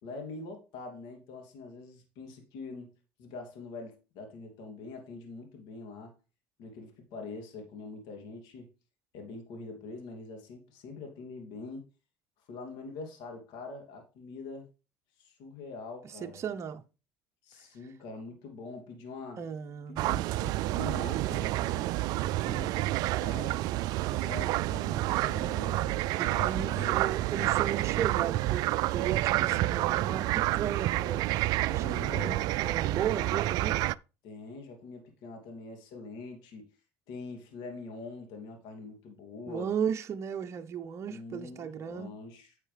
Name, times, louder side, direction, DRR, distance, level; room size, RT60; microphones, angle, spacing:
voice 1, 0.0-2.9 3.2-6.1 6.6-8.7 9.1-11.9 12.5-14.7 15.2-16.4 17.4-19.4 19.9-21.9 22.2-22.7 23.1-23.6 23.9-26.0 26.3-27.0 31.8-32.4 34.2-36.7 37.1-39.7 41.1-42.5, left 3 dB, 70° left, 2.8 m, -44 dB
voice 2, 16.0-16.8 19.4-20.1 25.6-28.7 28.9-31.3 31.6-31.9 32.1-33.8 39.5-42.1, right 8 dB, 40° right, 0.8 m, -35 dB
sound 1, 20.0-33.9, right 16 dB, 65° right, 0.3 m, -29 dB
9.9 x 6.5 x 3.4 m
supercardioid pair, 85°, 7 cm